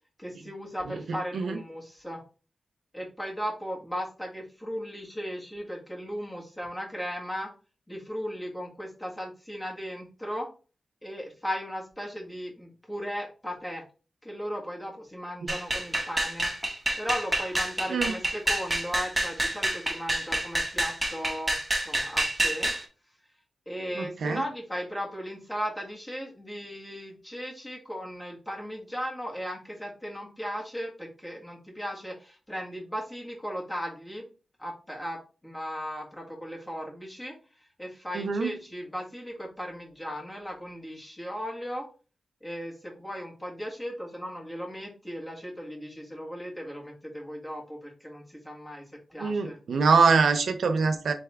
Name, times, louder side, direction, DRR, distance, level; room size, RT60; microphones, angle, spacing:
voice 1, 0.2-2.2 2.9-7.5 7.9-10.5 11.0-13.8 14.2-16.5 17.0-21.6 21.8-22.7 23.6-34.3 34.6-37.4 37.8-41.9 42.4-48.8 49.1-49.6, equal, 15° left, 1.5 m, -36 dB
sound 1, 15.5-22.8, right 1 dB, 15° right, 1.0 m, -28 dB
voice 2, 24.0-24.4 38.1-38.5 49.2-51.1, right 5 dB, 75° right, 0.5 m, -24 dB
4.2 x 3.5 x 3.4 m
wide cardioid pair, 125°, 0 cm